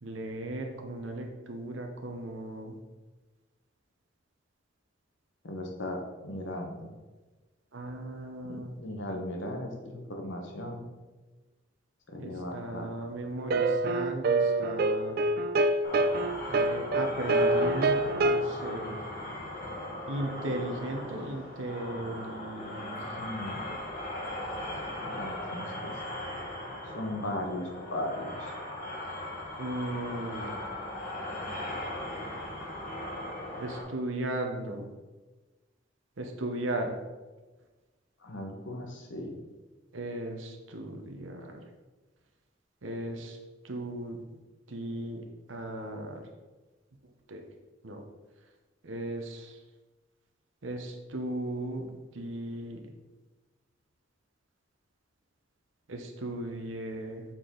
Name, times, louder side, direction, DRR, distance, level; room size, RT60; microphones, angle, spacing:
voice 1, 0.0-2.8 7.7-8.8 12.2-15.2 16.5-19.0 20.1-23.3 23.7-23.8 29.6-30.5 33.6-34.9 36.2-36.9 39.9-41.6 42.8-43.4 43.6-44.2 44.7-45.2 45.5-46.2 47.3-47.4 47.8-48.0 48.8-49.6 50.6-51.8 52.1-52.8 55.9-57.2, right 1 dB, 85° right, 3 dB, 0.8 m, -36 dB
voice 2, 5.4-6.9 8.5-10.9 12.1-12.9 23.0-23.7 25.0-25.9 26.9-28.5 38.2-39.4, left 1 dB, 75° left, 2 dB, 1.2 m, -37 dB
sound 1, 13.5-18.4, right 2 dB, 50° right, 0.3 m, -26 dB
sound 2, 15.8-33.8, left 1 dB, 45° left, 1.6 m, -38 dB
6.8 x 4.4 x 3.8 m, 1.2 s
head